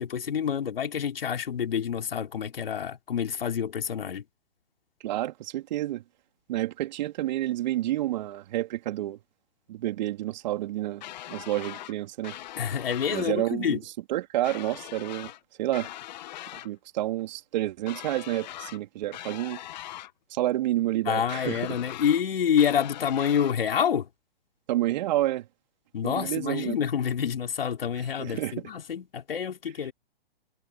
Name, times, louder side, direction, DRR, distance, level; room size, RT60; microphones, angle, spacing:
voice 1, 0.0-4.2 12.6-13.8 21.1-24.1 25.9-29.9, left 8 dB, 70° left, 3.6 m, -27 dB
voice 2, 5.0-6.0 6.5-9.2 9.7-11.0 11.3-12.4 13.1-13.8 14.1-15.3 15.6-15.9 16.6-19.6 20.3-21.8 24.7-25.5 26.0-26.8 28.2-28.5, right 14 dB, 45° right, 3.7 m, -29 dB
sound 1, 11.0-11.9 12.2-13.3 14.4-15.4 15.7-16.7 17.9-18.8 19.1-20.1 21.3-22.2 22.6-23.6, left 14 dB, 45° left, 1.6 m, -41 dB
hypercardioid pair, 135°, 30 cm